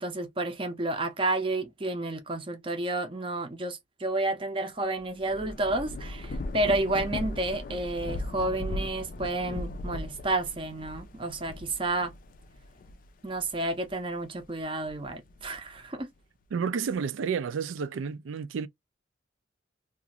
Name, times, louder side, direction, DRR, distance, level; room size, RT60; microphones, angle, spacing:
voice 1, 0.0-12.2 13.2-16.1, right 2 dB, 25° right, 0.5 m, -31 dB
Thunder / Rain, 5.0-13.9 14.4-15.8, left 2 dB, 45° left, 0.4 m, -38 dB
voice 2, 16.5-18.7, right 6 dB, 80° right, 0.4 m, -30 dB
2.5 x 2.4 x 2.9 m
head